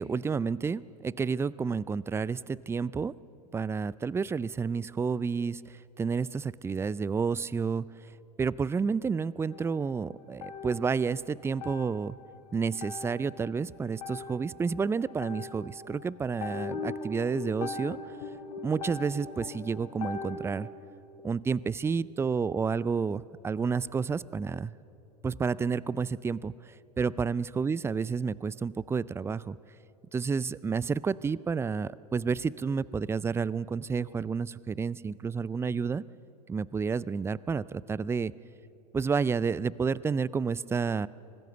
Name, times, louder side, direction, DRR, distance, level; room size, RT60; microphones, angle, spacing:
voice 1, 0.0-3.1 3.5-5.6 6.0-7.8 8.4-12.1 12.5-18.0 18.6-20.7 21.2-24.7 25.2-26.5 27.0-29.6 30.1-36.0 36.5-38.3 38.9-41.1, right 5 dB, 10° right, 21 dB, 0.4 m, -30 dB
sound 1, 9.5-11.2 11.5-20.7, left 4 dB, 65° left, 3.6 m, -41 dB
25.0 x 19.5 x 6.9 m, 2.8 s
hypercardioid pair, 90°, 20 cm